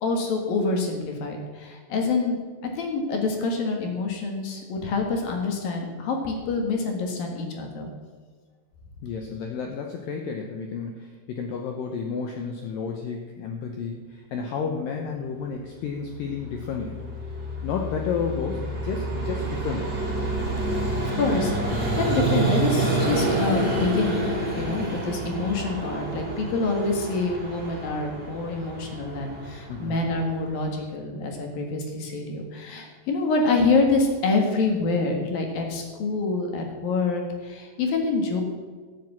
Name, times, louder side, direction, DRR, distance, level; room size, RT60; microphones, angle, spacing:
voice 1, 0.0-2.4 2.7-7.9 21.1-24.2 24.6-38.4, left 3 dB, 60° left, 2 dB, 3.0 m, -26 dB
voice 2, 9.0-17.0 17.6-19.9 23.1-23.4 29.7-30.0, left 5 dB, 80° left, 3 dB, 1.9 m, -31 dB
Vehicle, 16.1-30.8, right 2 dB, 25° right, 4.2 m, -28 dB
13.5 x 7.7 x 7.3 m, 1.5 s
omnidirectional pair, 5.3 m